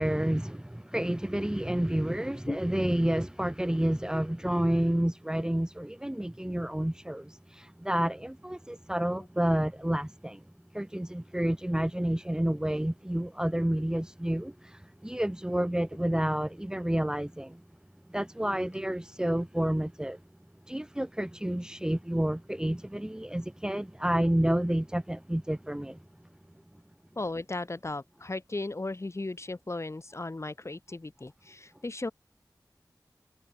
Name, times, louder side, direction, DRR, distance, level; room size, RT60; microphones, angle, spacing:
voice 1, 0.0-10.4 10.7-17.6 18.1-20.2 20.7-26.0, right 1 dB, 10° right, 0.9 m, -29 dB
voice 2, 27.2-32.1, left 2 dB, 40° left, 2.5 m, -36 dB
wide cardioid pair, 80°, 7 cm